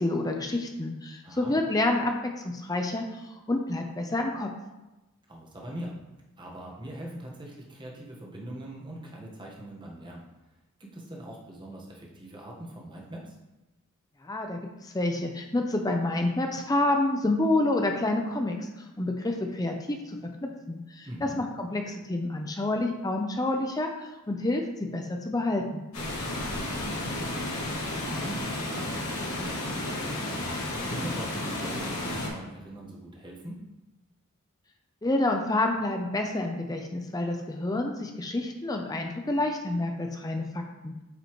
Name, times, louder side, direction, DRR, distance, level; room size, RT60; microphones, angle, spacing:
voice 1, 0.0-4.5 14.2-18.7 19.0-25.8 35.0-40.9, left 2 dB, 15° left, 3 dB, 0.5 m, -28 dB
voice 2, 1.2-1.6 5.3-5.9 6.4-10.2 10.8-13.3 21.0-21.4 26.7-33.6, right 1 dB, 20° right, -2 dB, 1.3 m, -42 dB
Water, 25.9-32.3, left 1 dB, 80° left, 2.4 m, -32 dB
8.5 x 5.4 x 3.1 m, 1.0 s
head